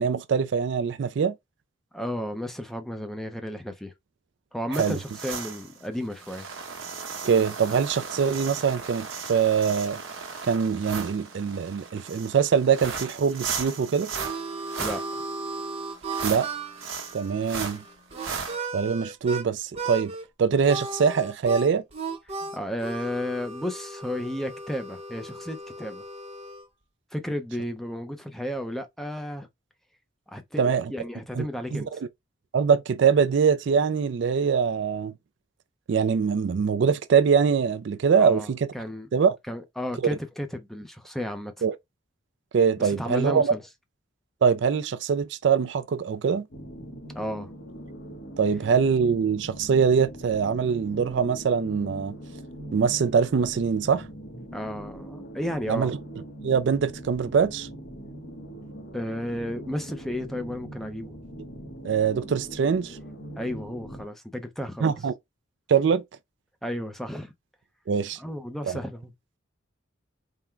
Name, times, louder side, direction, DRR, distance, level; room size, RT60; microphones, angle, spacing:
voice 1, 0.0-1.3 4.7-5.0 7.2-10.0 10.4-14.1 16.2-16.5 17.1-17.8 18.7-20.1 20.4-21.8 30.6-30.9 31.4-31.5 31.7-31.8 32.5-35.1 35.9-38.7 39.1-39.4 41.6-41.8 42.5-43.5 44.4-46.4 48.4-52.2 52.7-54.1 55.7-56.0 56.4-57.7 61.8-63.0 64.8-65.1 65.7-66.0 67.9-68.2, right 6 dB, 60° right, 0.3 m, -23 dB
voice 2, 1.9-3.9 4.5-6.5 14.8-15.2 22.5-26.0 27.1-29.5 30.3-32.0 38.2-39.1 39.5-41.6 42.8-43.6 47.1-47.5 54.5-55.9 58.9-61.1 63.3-65.0 66.6-67.3 68.2-69.1, equal, ahead, 0.5 m, -33 dB
sound 1, 4.7-18.6, right 5 dB, 80° right, 1.0 m, -36 dB
Harmonica, 13.7-19.5 19.7-20.3 20.6-26.7, right 3 dB, 30° right, 0.8 m, -36 dB
sound 2, 46.5-64.0, right 1 dB, 55° left, 1.0 m, -41 dB
3.7 x 2.1 x 4.3 m
head